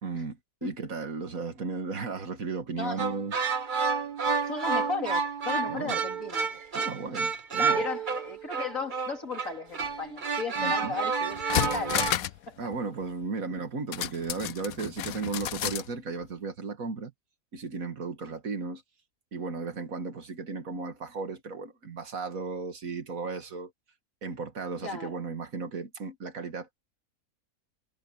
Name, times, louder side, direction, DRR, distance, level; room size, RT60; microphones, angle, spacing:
voice 1, 0.0-3.3 5.7-6.0 6.7-7.8 10.6-11.0 12.6-17.1 17.5-18.8 19.3-23.7 24.2-26.8, right 4 dB, 70° right, 2.3 m, -35 dB
sound 1, 3.0-12.1, right 5 dB, 40° right, 1.1 m, -29 dB
voice 2, 4.4-6.5 7.5-12.1 12.5-12.6 24.8-25.2, left 3 dB, 65° left, 3.7 m, -35 dB
sound 2, 10.9-11.0 11.3-12.5 12.7-12.8 13.9-15.9 16.2-16.3, left 12 dB, 85° left, 1.1 m, -31 dB
omnidirectional pair, 1.5 m